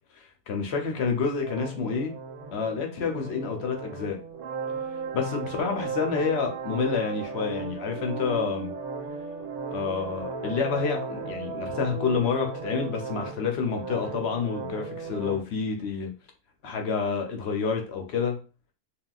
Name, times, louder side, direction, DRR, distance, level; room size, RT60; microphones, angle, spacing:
voice 1, 0.1-2.1 2.5-4.2 5.1-8.8 9.7-16.1 16.6-18.4, left 5 dB, 60° left, 0.7 m, -28 dB
sound 1, 1.4-15.4, right 5 dB, 80° right, 1.1 m, -36 dB
3.6 x 2.3 x 2.3 m
omnidirectional pair, 1.6 m